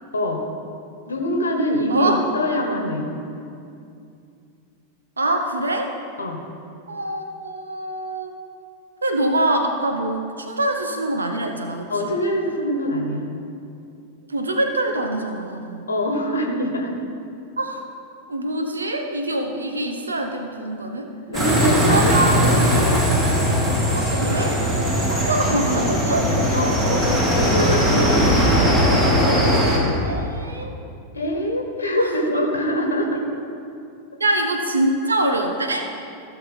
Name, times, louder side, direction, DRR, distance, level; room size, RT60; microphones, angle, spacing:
voice 1, 1.1-3.1 6.2-6.4 11.9-13.3 15.9-16.9 21.3-22.1 22.4-22.8 26.5-26.8 27.3-28.2 31.1-33.3, equal, 75° left, 2 dB, 1.2 m, -24 dB
voice 2, 1.9-2.2 5.2-5.9 6.9-8.3 9.0-12.1 14.3-15.9 17.6-17.8 18.3-21.1 21.8-22.4 23.9-24.6 25.0-26.3 30.0-30.8 32.0-32.4 34.2-35.9, right 1 dB, 75° right, 4 dB, 0.8 m, -24 dB
sound 1, 21.3-29.8, equal, 25° right, 2.4 m, -19 dB
16.0 x 6.3 x 4.2 m, 2.5 s
figure-of-eight pair, 90°, 0 cm